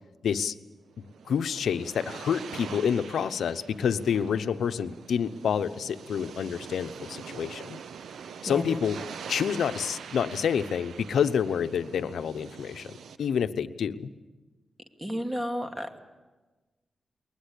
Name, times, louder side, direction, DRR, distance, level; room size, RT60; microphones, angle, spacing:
voice 1, 0.2-0.5 1.3-7.8 8.4-9.0 9.3-12.9 13.2-14.1, left 7 dB, 85° left, 11 dB, 0.9 m, -28 dB
sound 1, 0.9-13.2, right 7 dB, 85° right, 0.7 m, -44 dB
voice 2, 8.5-8.8 15.0-16.0, equal, 10° right, 5 dB, 2.5 m, -32 dB
21.5 x 20.0 x 8.5 m, 1.2 s
cardioid pair, 75°, 0 cm